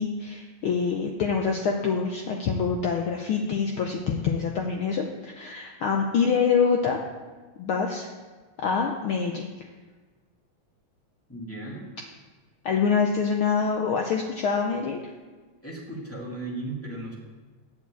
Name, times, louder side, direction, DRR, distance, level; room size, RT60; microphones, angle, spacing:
voice 1, 0.0-7.0 7.6-8.1 8.6-9.5 12.6-15.0, left 5 dB, 85° left, 2 dB, 1.1 m, -25 dB
voice 2, 11.3-11.9 15.6-17.1, right 2 dB, 5° left, -5 dB, 1.9 m, -36 dB
8.8 x 7.2 x 8.2 m, 1.4 s
omnidirectional pair, 3.4 m